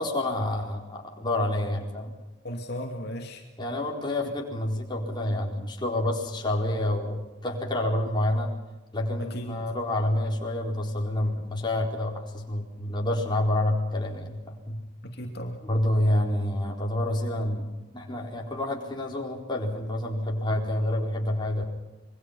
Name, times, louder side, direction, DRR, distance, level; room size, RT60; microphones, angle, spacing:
voice 1, 0.0-2.1 3.6-8.5 8.9-14.8 15.6-21.6, left 1 dB, 25° left, 0 dB, 4.3 m, -28 dB
voice 2, 2.4-3.4 9.2-9.6 15.0-15.6, equal, 55° left, 2 dB, 2.8 m, -35 dB
27.0 x 23.0 x 5.8 m, 1.1 s
head